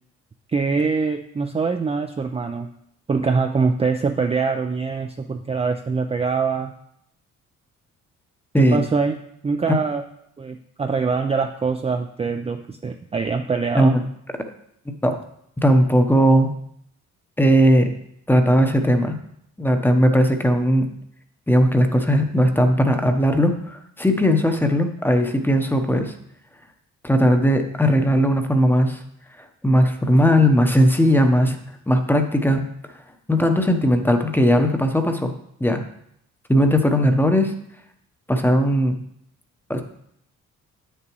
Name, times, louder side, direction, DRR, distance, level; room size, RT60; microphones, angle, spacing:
voice 1, 0.5-2.7 3.1-6.7 8.5-10.0 10.4-14.0, right 4 dB, 20° right, 5 dB, 0.4 m, -24 dB
voice 2, 15.6-16.5 17.4-17.9 18.3-19.2 19.6-20.9 21.5-26.1 27.0-29.0 29.6-31.6 31.9-32.6 33.3-35.3 35.6-35.8 36.5-37.5 38.3-39.0 39.7-39.8, equal, 5° left, 6 dB, 0.9 m, -18 dB
8.5 x 6.9 x 3.0 m, 0.73 s
cardioid pair, 90°, 30 cm